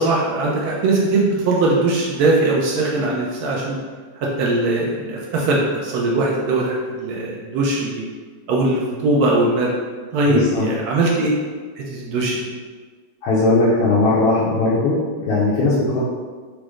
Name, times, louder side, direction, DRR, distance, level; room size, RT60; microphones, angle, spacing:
voice 1, 0.0-3.8 4.2-8.0 8.5-9.7 10.1-11.3 11.8-12.5, right 2 dB, 85° right, -3 dB, 0.8 m, -20 dB
voice 2, 10.3-10.7 13.2-16.0, left 2 dB, 90° left, -7 dB, 1.5 m, -18 dB
4.7 x 2.0 x 3.1 m, 1.5 s
omnidirectional pair, 2.2 m